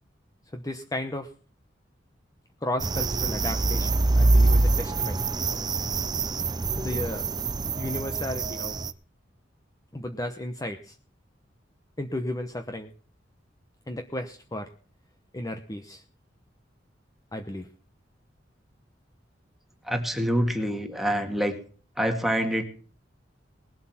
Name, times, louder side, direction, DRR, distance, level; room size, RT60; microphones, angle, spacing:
voice 1, 0.5-1.3 2.6-5.2 6.7-7.3 7.8-8.8 9.9-11.0 12.0-12.9 13.9-14.7 15.3-16.0 17.3-17.7, left 1 dB, 20° left, 6 dB, 1.0 m, -34 dB
sound 1, 2.8-8.9, right 2 dB, 20° right, 0.6 m, -24 dB
voice 2, 19.8-21.6 22.0-22.6, equal, ahead, 4 dB, 2.1 m, -26 dB
20.0 x 7.9 x 5.9 m, 0.40 s
head